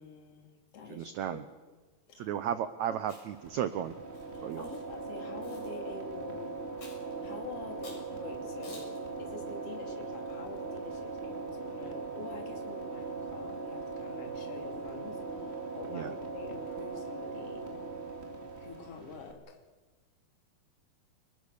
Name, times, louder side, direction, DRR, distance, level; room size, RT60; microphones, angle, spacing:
voice 1, 0.0-1.4 1.7-1.8 2.1-2.6 2.9-3.0 4.3-6.6 7.0-8.9 9.2-17.7 18.6-19.6, left 5 dB, 40° left, 3 dB, 3.6 m, -47 dB
voice 2, 0.9-1.4 2.2-3.9 4.4-4.7 15.9-16.1, right 10 dB, 85° right, 12 dB, 1.6 m, -34 dB
Chewing mastication, 3.0-3.5 4.1-4.8 5.4-5.7 6.8-7.1 7.8-8.1 8.6-9.0, left 2 dB, 60° left, 8.9 m, -51 dB
sound 1, 3.3-19.3, right 4 dB, 20° right, 2.8 m, -40 dB
30.0 x 20.0 x 6.7 m, 1.3 s
omnidirectional pair, 4.5 m